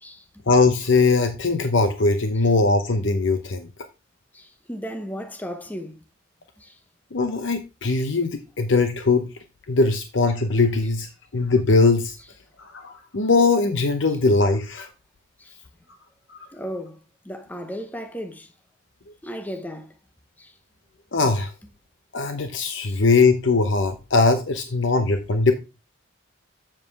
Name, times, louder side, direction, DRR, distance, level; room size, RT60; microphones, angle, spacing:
voice 1, 0.5-3.7 7.1-9.3 9.7-11.1 11.3-12.2 12.6-14.9 16.3-16.4 21.1-21.5 22.1-25.5, left 3 dB, 65° left, 0.7 m, -20 dB
voice 2, 4.3-6.0 6.6-6.8 15.4-15.6 16.5-17.0 17.2-18.5 19.2-19.9 20.4-20.5 22.8-23.0, equal, 10° left, 0.8 m, -35 dB
7.5 x 7.3 x 3.2 m
head